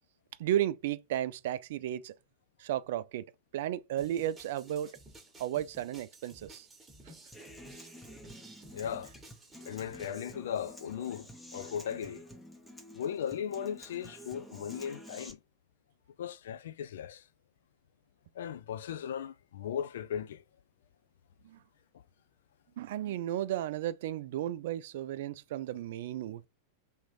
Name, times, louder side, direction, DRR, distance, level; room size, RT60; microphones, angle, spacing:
voice 1, 0.4-2.1 2.6-3.2 3.5-4.9 5.4-6.7 21.4-21.6 22.8-26.5, right 12 dB, 55° right, 0.3 m, -34 dB
sound 1, 4.0-10.2, right 2 dB, 10° right, 1.3 m, -54 dB
Human voice / Acoustic guitar, 7.3-15.3, equal, 5° left, 0.9 m, -50 dB
voice 2, 8.7-9.1 9.7-12.2 12.9-15.4 16.2-17.2 18.4-20.4, left 8 dB, 60° left, 0.4 m, -37 dB
3.6 x 3.0 x 4.0 m
figure-of-eight pair, 90°, 0 cm